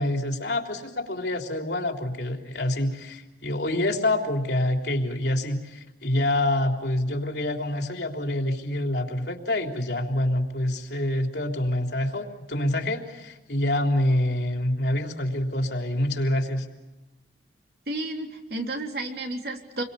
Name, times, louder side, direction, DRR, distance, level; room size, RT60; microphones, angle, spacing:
voice 1, 0.0-16.7, left 1 dB, 70° left, 2 dB, 3.6 m, -26 dB
voice 2, 17.9-19.8, right 2 dB, 60° right, 2 dB, 3.7 m, -32 dB
29.0 x 23.5 x 7.0 m, 1.1 s
head